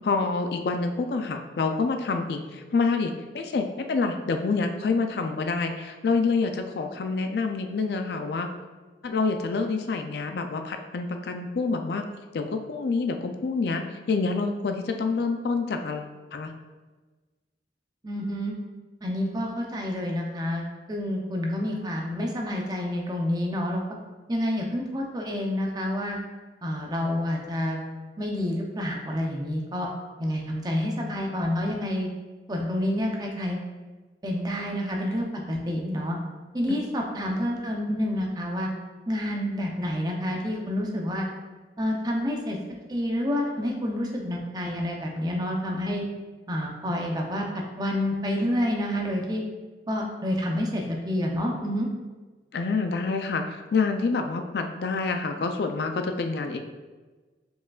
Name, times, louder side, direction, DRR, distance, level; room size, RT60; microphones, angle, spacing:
voice 1, 0.0-8.5 9.0-12.1 12.3-16.5 36.7-36.8 52.5-53.4 53.7-56.6, left 4 dB, 65° left, 6 dB, 0.4 m, -27 dB
voice 2, 18.0-18.5 19.0-23.8 24.3-26.2 26.6-27.8 28.2-29.9 30.2-32.1 32.5-33.6 34.2-36.1 36.5-38.7 39.1-41.3 41.8-42.6 42.9-46.0 46.5-47.5 47.8-49.4 49.9-51.9, left 1 dB, 20° right, 0 dB, 0.6 m, -28 dB
4.9 x 4.7 x 2.4 m, 1.3 s
head